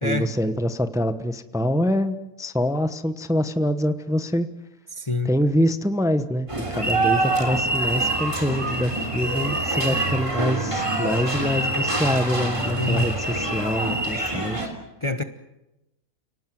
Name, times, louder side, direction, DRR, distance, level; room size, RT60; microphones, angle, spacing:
voice 1, 0.0-4.5 5.2-14.8, equal, 5° right, 10 dB, 0.9 m, -25 dB
voice 2, 5.0-5.3 12.8-13.1 15.0-15.2, left 2 dB, 25° left, 9 dB, 1.0 m, -25 dB
sound 1, 6.5-14.7, right 2 dB, 20° right, 3.3 m, -25 dB
29.5 x 19.0 x 7.8 m, 0.95 s
omnidirectional pair, 1.5 m